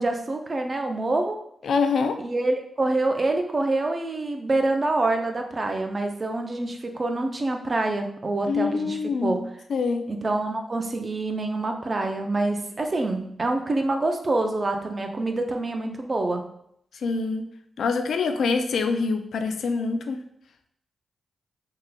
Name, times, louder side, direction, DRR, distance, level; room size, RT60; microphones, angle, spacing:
voice 1, 0.0-1.4 2.2-9.5 10.1-16.4, right 2 dB, 40° right, 4 dB, 0.5 m, -26 dB
voice 2, 1.6-2.2 8.5-9.4 9.7-10.1 17.0-17.4 17.8-20.2, left 4 dB, 80° left, 7 dB, 0.3 m, -25 dB
3.6 x 2.8 x 2.2 m, 0.71 s
cardioid pair, 60°, 0 cm